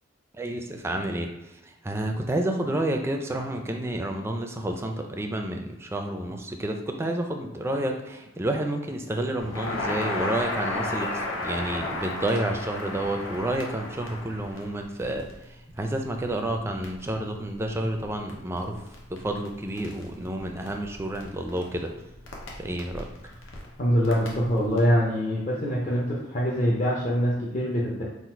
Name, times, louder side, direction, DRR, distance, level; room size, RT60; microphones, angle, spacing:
voice 1, 0.4-1.3 1.8-15.3 15.8-18.7 19.1-21.9 22.6-23.1, right 1 dB, 15° right, 4 dB, 0.4 m, -30 dB
Crackle, 9.4-24.8, left 2 dB, 80° left, 0.8 m, -36 dB
voice 2, 23.8-28.0, equal, 40° left, -5 dB, 0.7 m, -24 dB
3.9 x 2.4 x 4.3 m, 1.0 s
head